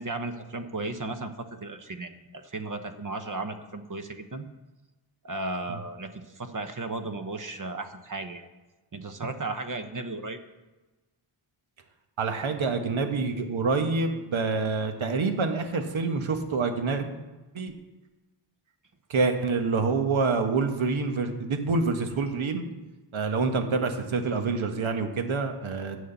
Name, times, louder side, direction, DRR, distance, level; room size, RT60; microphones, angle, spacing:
voice 1, 0.0-4.5 5.2-8.5 8.9-10.4, right 2 dB, 40° right, 8 dB, 1.1 m, -35 dB
voice 2, 12.2-17.1 17.5-17.7 19.1-22.6 23.1-26.0, right 4 dB, 75° right, 6 dB, 1.4 m, -27 dB
9.4 x 6.4 x 8.1 m, 1.2 s
wide cardioid pair, 85°, 48 cm